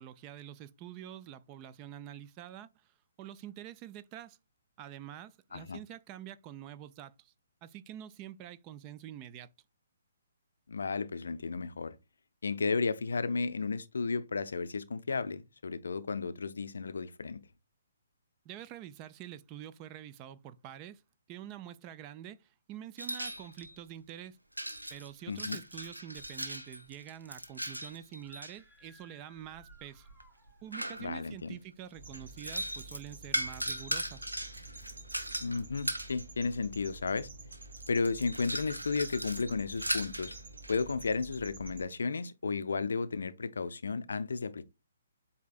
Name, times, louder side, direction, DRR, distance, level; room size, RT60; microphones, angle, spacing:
voice 1, 0.0-2.7 3.2-4.4 4.8-7.3 7.6-9.5 18.5-21.0 21.3-22.4 22.7-24.4 24.9-30.1 30.6-34.3, right 11 dB, 25° right, 0.3 m, -46 dB
voice 2, 10.7-12.0 12.4-17.4 25.3-25.6 31.0-31.5 35.4-37.3 37.9-40.3 40.7-44.7, left 4 dB, 60° left, 0.4 m, -33 dB
sound 1, 23.0-23.7 24.6-28.5 29.4-31.4 32.1-36.2 37.1-37.2 37.5-40.8, right 1 dB, 85° right, 0.7 m, -38 dB
Screaming, 28.1-30.9, right 1 dB, 10° right, 1.0 m, -62 dB
sound 2, 31.9-41.9, right 3 dB, 50° right, 1.2 m, -49 dB
7.9 x 2.8 x 2.4 m
figure-of-eight pair, 130°, 0 cm